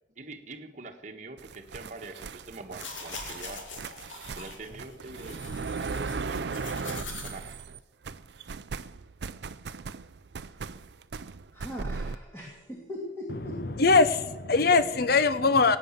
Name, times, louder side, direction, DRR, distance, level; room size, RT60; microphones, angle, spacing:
voice 1, 0.1-3.8 4.3-5.4 5.8-7.5, right 2 dB, 40° right, 4 dB, 1.3 m, -44 dB
sound 1, 1.4-7.8 8.0-12.2, right 4 dB, 60° right, 0.5 m, -37 dB
sound 2, 2.6-7.3, left 4 dB, 90° left, 2.8 m, -43 dB
voice 2, 11.5-13.6, equal, 15° left, -2 dB, 2.6 m, -40 dB
voice 3, 13.8-15.8, left 4 dB, 55° left, 13 dB, 0.8 m, -21 dB
18.5 x 9.3 x 7.2 m, 1.1 s
head